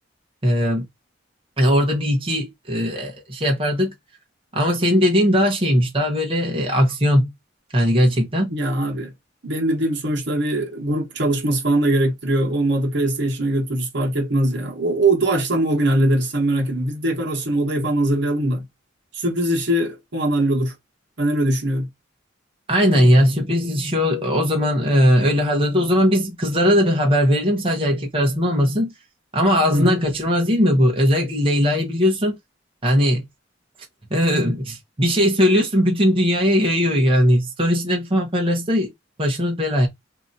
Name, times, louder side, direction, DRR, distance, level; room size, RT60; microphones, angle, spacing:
voice 1, 0.4-0.8 1.6-3.9 4.5-7.3 7.7-8.5 22.7-28.9 29.3-32.4 32.8-33.2 34.1-38.9 39.2-39.9, equal, 30° right, 0.9 m, -19 dB
voice 2, 8.5-9.1 9.4-18.6 19.1-20.7 21.2-21.9 29.7-30.0, right 1 dB, 65° right, 1.2 m, -21 dB
2.8 x 2.5 x 3.9 m
head